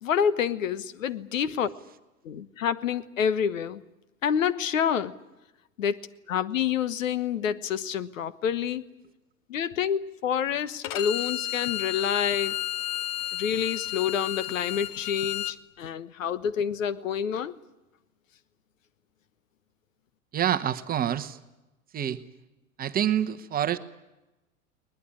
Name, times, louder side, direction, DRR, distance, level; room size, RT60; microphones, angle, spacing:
voice 1, 0.0-1.7 2.2-3.8 4.2-5.1 5.8-8.8 9.5-12.6 13.3-17.5, left 8 dB, 65° left, 15 dB, 1.3 m, -28 dB
Bowed string instrument, 10.8-15.6, left 12 dB, 45° left, 1.0 m, -32 dB
voice 2, 20.3-21.4 21.9-22.2 22.8-23.8, right 10 dB, 20° right, 11 dB, 1.1 m, -27 dB
21.0 x 20.5 x 9.9 m, 0.99 s
figure-of-eight pair, 95°, 42 cm